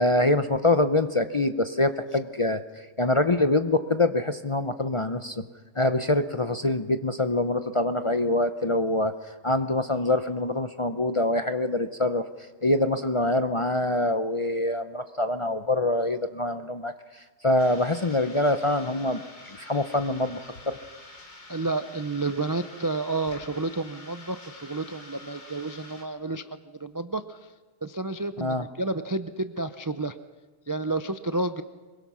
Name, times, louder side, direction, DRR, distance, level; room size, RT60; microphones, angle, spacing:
voice 1, 0.0-5.4 5.8-12.2 12.6-20.4 20.7-20.8 28.4-28.7, left 2 dB, 35° left, 9 dB, 0.6 m, -25 dB
sound 1, 17.6-26.0, left 2 dB, 80° left, 3.7 m, -47 dB
voice 2, 21.5-26.5 26.8-27.4 27.8-30.2 30.7-31.6, right 3 dB, 30° right, 10 dB, 0.4 m, -30 dB
24.5 x 22.0 x 6.2 m, 1.3 s
omnidirectional pair, 1.4 m